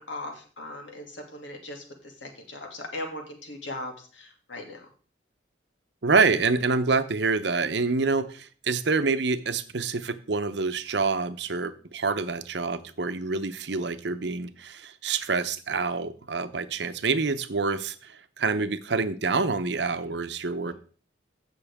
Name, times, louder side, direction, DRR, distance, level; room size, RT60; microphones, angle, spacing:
voice 1, 0.0-4.9 20.6-20.7, left 1 dB, 80° left, 2 dB, 2.5 m, -39 dB
voice 2, 6.0-20.7, right 4 dB, 70° right, 11 dB, 0.8 m, -27 dB
15.5 x 6.2 x 3.6 m, 0.40 s
head